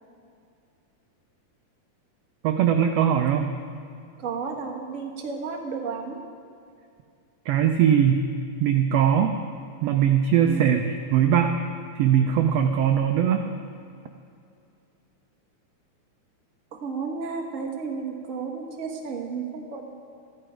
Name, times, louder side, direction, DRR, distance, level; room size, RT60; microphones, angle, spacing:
voice 1, 2.4-3.6 7.5-8.3 8.6-9.4 9.8-11.6 12.0-13.5, right 8 dB, 90° right, 5 dB, 1.4 m, -21 dB
voice 2, 4.2-6.2 10.4-10.8 16.7-19.9, right 5 dB, 65° right, 1 dB, 0.7 m, -32 dB
13.5 x 12.5 x 5.0 m, 2.4 s
omnidirectional pair, 3.6 m